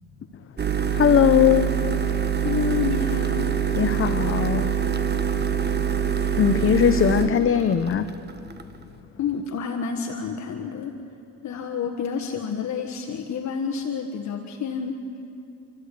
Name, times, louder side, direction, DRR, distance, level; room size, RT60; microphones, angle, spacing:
sound 1, 0.6-8.8, right 8 dB, 35° right, 1.6 m, -24 dB
voice 1, 0.9-1.8 3.7-4.7 6.4-8.1, left 8 dB, 45° left, 0.9 m, -20 dB
voice 2, 2.4-3.5 9.2-11.0 11.4-15.0, left 6 dB, 65° left, 1.5 m, -29 dB
30.0 x 14.0 x 8.5 m
cardioid pair, 90°, 30 cm